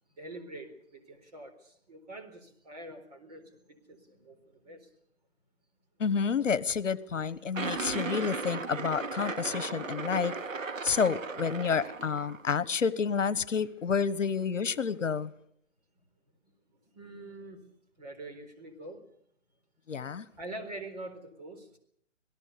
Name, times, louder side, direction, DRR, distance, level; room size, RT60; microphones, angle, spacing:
voice 1, 0.2-4.9 16.9-17.6 18.0-19.0 20.4-21.7, right 2 dB, 30° right, 4.1 m, -45 dB
voice 2, 6.0-10.3 10.8-15.3 19.9-20.3, left 6 dB, 75° left, 1.3 m, -29 dB
sound 1, 7.5-12.5, right 4 dB, 90° right, 2.7 m, -36 dB
27.0 x 18.0 x 6.9 m
hypercardioid pair, 175°, 38 cm